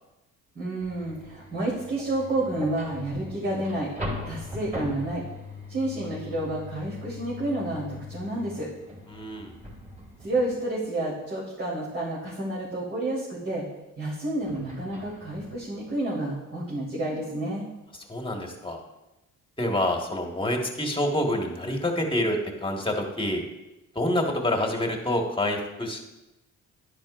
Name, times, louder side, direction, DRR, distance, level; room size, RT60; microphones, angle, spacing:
voice 1, 0.5-3.9 4.2-5.2 5.7-8.7 10.2-13.6 14.0-17.7, right 1 dB, 40° right, -8 dB, 3.8 m, -30 dB
sound 1, 0.8-10.9 14.4-16.1, left 1 dB, 25° right, 3.8 m, -40 dB
voice 2, 9.1-9.5 18.1-18.8 19.6-23.4 23.9-26.0, left 1 dB, 15° left, 2 dB, 1.7 m, -27 dB
10.5 x 10.5 x 2.6 m, 0.99 s
cardioid pair, 90°, 30 cm